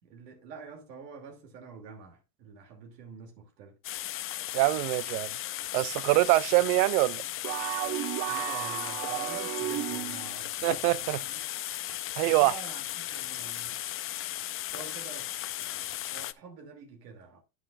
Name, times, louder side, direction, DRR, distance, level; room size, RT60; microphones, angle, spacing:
voice 1, 0.0-3.8 6.4-6.6 8.2-11.4 12.4-13.8 14.7-17.4, right 5 dB, 85° right, 2.8 m, -47 dB
sound 1, 3.8-16.3, left 13 dB, 30° left, 0.4 m, -36 dB
voice 2, 4.5-5.3 5.7-7.2 10.6-11.2 12.2-12.5, right 19 dB, 70° right, 0.7 m, -24 dB
sound 2, 7.4-10.3, right 15 dB, 40° right, 0.4 m, -33 dB
9.7 x 9.1 x 2.4 m
supercardioid pair, 110°, 48 cm